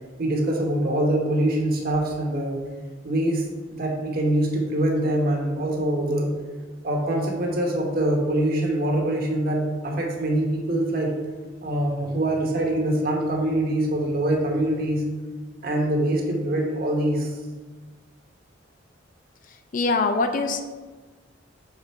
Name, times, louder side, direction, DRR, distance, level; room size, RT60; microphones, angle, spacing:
voice 1, 0.2-2.7 3.0-6.3 6.8-11.2 11.6-15.0 15.6-17.4, right 1 dB, 50° right, 0 dB, 1.1 m, -24 dB
voice 2, 19.7-20.6, left 3 dB, 45° left, 7 dB, 0.4 m, -23 dB
5.9 x 3.8 x 4.5 m, 1.3 s
head